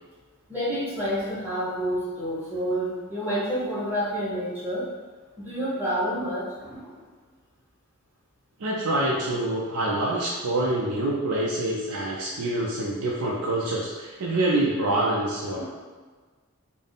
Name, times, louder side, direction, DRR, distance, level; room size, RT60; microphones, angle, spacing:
voice 1, 0.5-4.9 5.4-7.0 15.5-15.7, equal, 10° right, -9 dB, 1.1 m, -29 dB
voice 2, 8.6-15.7, right 1 dB, 85° right, -4 dB, 0.5 m, -26 dB
3.6 x 2.0 x 3.9 m, 1.4 s
head